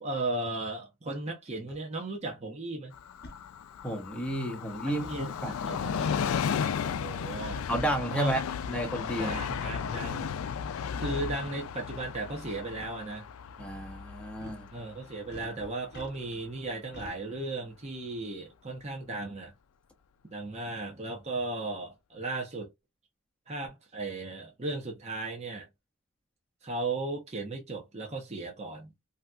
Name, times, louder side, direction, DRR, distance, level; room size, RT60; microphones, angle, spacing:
voice 1, 0.0-2.9 4.9-6.3 7.0-7.6 8.1-8.3 9.2-10.3 11.0-13.3 14.7-19.5 20.3-22.7 23.5-25.7 26.6-28.9, right 2 dB, 30° right, 0.8 m, -36 dB
sound 1, 1.7-1.8 3.2-3.4 5.0-5.3 7.0-7.2 8.1-8.2 9.0-9.1 9.3-9.5 10.8-10.9 12.3-12.5 12.8-12.9 14.4-14.7 15.3-16.4 16.9-17.2, left 2 dB, 50° left, 0.9 m, -48 dB
Train, 2.9-16.2 16.6-16.7, left 7 dB, 70° left, 0.3 m, -35 dB
voice 2, 3.8-5.9 7.7-8.4 8.7-9.4 13.6-14.7, right 1 dB, 5° left, 0.9 m, -32 dB
3.1 x 2.8 x 2.3 m
head